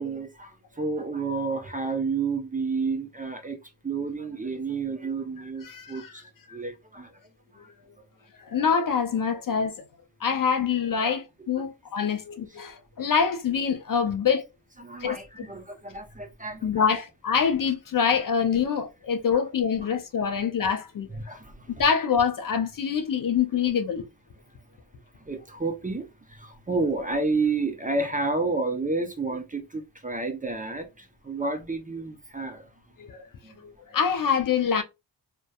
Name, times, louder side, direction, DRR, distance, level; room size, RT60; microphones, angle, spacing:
voice 1, 0.0-3.6 3.8-7.2 7.5-7.7 11.0-11.2 11.6-11.7 14.8-16.8 19.3-19.4 19.8-19.9 20.2-20.3 21.1-21.8 25.2-32.7 33.4-33.6, right 3 dB, 15° right, 0.5 m, -30 dB
voice 2, 5.6-6.1 6.5-6.6 8.4-9.8 10.2-14.4 15.0-15.2 16.6-21.1 21.8-24.0 33.0-33.3 33.6-34.8, left 6 dB, 45° left, 0.4 m, -25 dB
2.6 x 2.1 x 2.2 m
cardioid pair, 55°, 49 cm